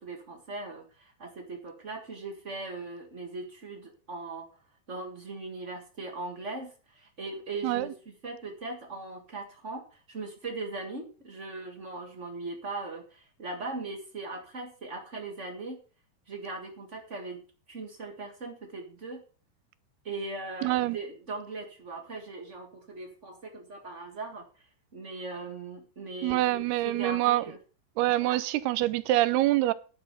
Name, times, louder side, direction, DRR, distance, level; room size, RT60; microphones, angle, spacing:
voice 1, 0.0-4.5 4.9-15.8 16.3-17.4 17.7-19.2 20.0-24.5 24.9-27.6 28.2-28.4, right 3 dB, 55° right, 0.8 m, -39 dB
voice 2, 20.6-21.0 26.2-27.4 28.0-29.7, right 16 dB, 85° right, 2.7 m, -25 dB
11.0 x 7.2 x 6.7 m
omnidirectional pair, 4.6 m